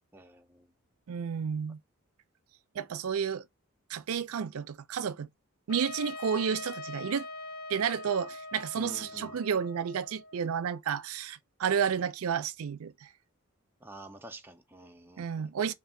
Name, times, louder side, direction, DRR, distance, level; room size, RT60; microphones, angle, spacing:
voice 1, 0.1-0.7 8.7-9.4 13.8-15.4, right 1 dB, 10° right, 0.4 m, -49 dB
voice 2, 1.1-1.8 2.7-3.4 3.9-5.3 5.7-7.3 7.7-13.1 15.2-15.7, right 7 dB, 75° right, 0.4 m, -31 dB
Trumpet, 5.7-10.5, left 2 dB, 75° left, 0.7 m, -43 dB
3.6 x 2.4 x 3.7 m
head